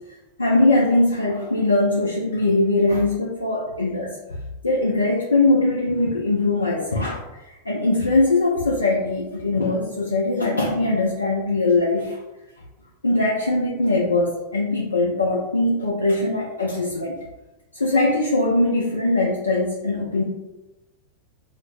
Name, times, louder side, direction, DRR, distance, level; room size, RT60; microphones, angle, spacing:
voice 1, 0.4-4.1 4.6-12.2 13.0-17.2 17.7-20.2, left 2 dB, 75° left, -3 dB, 0.3 m, -21 dB
2.4 x 2.0 x 3.1 m, 1.0 s
figure-of-eight pair, 90°, 0 cm